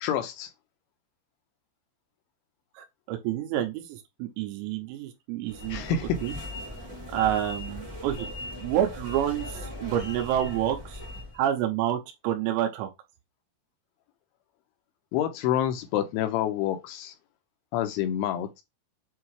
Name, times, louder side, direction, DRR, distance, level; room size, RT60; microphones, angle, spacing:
voice 1, 0.0-0.5 5.7-6.2 15.1-17.1 17.7-18.6, left 10 dB, 80° left, 2.8 m, -28 dB
voice 2, 2.8-6.0 6.2-6.3 7.1-8.3 8.6-11.0 11.4-12.0 12.2-12.9, right 11 dB, 90° right, 3.7 m, -28 dB
sound 1, 5.4-11.4, left 1 dB, 70° right, 0.3 m, -39 dB
8.2 x 2.8 x 4.7 m
omnidirectional pair, 5.9 m